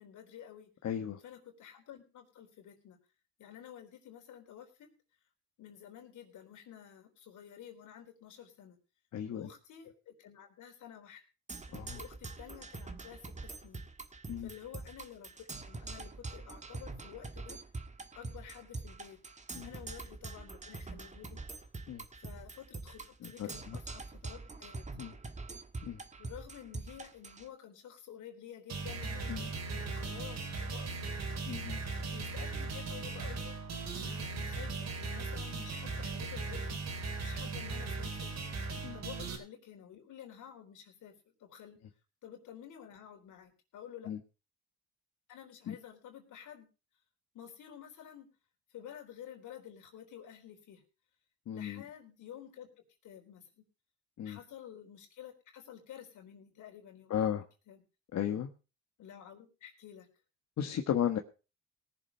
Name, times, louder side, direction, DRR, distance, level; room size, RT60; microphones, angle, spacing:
voice 1, 0.0-0.7 1.2-3.0 3.4-4.9 5.6-8.8 9.3-11.2 11.9-13.8 14.4-17.6 18.2-19.2 19.6-21.4 22.2-24.9 26.2-31.6 32.1-33.7 33.9-36.8 37.2-38.3 38.9-41.1 41.4-41.8 42.2-44.1 45.3-46.7 47.3-48.3 48.7-50.8 51.5-52.7 53.0-53.6 54.2-57.3 57.7-57.8 59.0-60.1, left 10 dB, 80° left, 4 dB, 3.8 m, -51 dB
voice 2, 0.8-1.2 9.1-9.4 11.7-12.0 14.3-14.5 19.5-19.7 21.9-22.0 23.2-23.8 25.0-25.1 25.8-26.0 29.3-29.5 31.5-31.8 38.8-39.0 44.1-44.2 45.7-45.8 51.5-51.8 54.2-54.4 57.1-57.4 58.1-58.5 60.6-61.2, left 9 dB, 65° left, 4 dB, 1.4 m, -35 dB
Percussion, 11.5-27.5, right 3 dB, 25° right, 1.5 m, -45 dB
sound 1, 28.7-39.4, right 3 dB, 60° right, 3.8 m, -38 dB
18.5 x 7.1 x 5.4 m, 0.33 s
cardioid pair, 90°, 30 cm